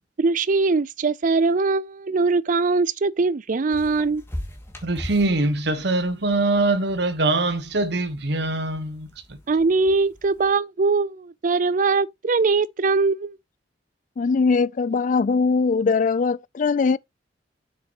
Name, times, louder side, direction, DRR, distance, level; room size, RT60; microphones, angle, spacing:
voice 1, 0.2-4.2 9.5-13.4, right 4 dB, 45° right, 0.5 m, -21 dB
sound 1, 3.7-10.5, equal, 15° left, 2.3 m, -41 dB
voice 2, 4.8-9.4, right 2 dB, 65° right, 1.3 m, -23 dB
voice 3, 14.2-17.0, left 4 dB, 45° left, 0.4 m, -21 dB
7.4 x 6.8 x 3.0 m
head